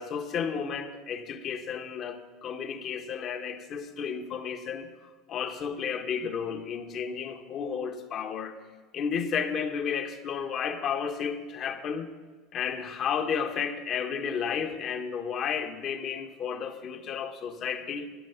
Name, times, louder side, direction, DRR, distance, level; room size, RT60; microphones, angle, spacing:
voice 1, 0.0-4.9 5.3-8.6 8.9-12.1 12.5-18.1, left 7 dB, 40° left, 1.2 m, -32 dB
11.5 x 11.5 x 5.7 m
supercardioid pair, 125°, 0 cm